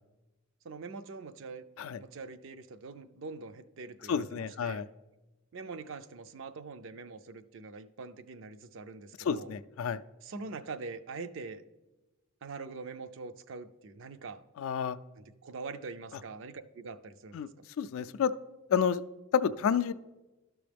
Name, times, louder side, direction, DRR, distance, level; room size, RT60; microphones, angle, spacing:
voice 1, 0.6-1.6 2.0-4.8 5.5-9.5 10.2-11.6 12.4-14.4 15.4-17.5, right 4 dB, 55° right, 11 dB, 0.4 m, -43 dB
voice 2, 4.1-4.9 9.2-10.0 14.6-15.0 17.3-17.5 17.8-18.3 18.7-19.0 19.3-19.9, left 7 dB, 65° left, 13 dB, 0.3 m, -29 dB
12.5 x 6.1 x 3.4 m, 1.1 s
head